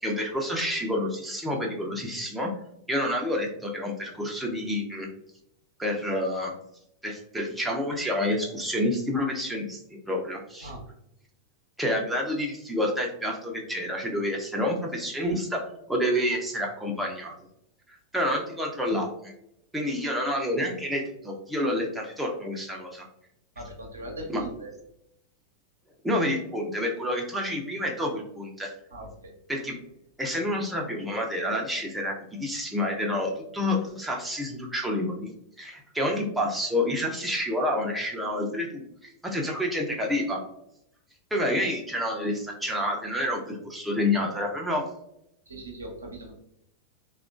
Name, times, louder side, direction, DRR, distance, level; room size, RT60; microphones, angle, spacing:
voice 1, 0.0-2.5 2.9-5.1 5.8-6.5 7.0-10.7 11.8-17.4 17.9-19.3 19.7-23.0 24.3-24.4 26.0-28.7 29.5-29.8 30.2-35.3 35.6-40.4 41.3-44.8, left 1 dB, 5° right, 0 dB, 0.6 m, -29 dB
voice 2, 23.6-24.7 28.9-29.1 45.5-46.4, right 1 dB, 75° right, 1 dB, 0.7 m, -39 dB
3.5 x 2.4 x 2.4 m, 0.78 s
figure-of-eight pair, 90°, 0 cm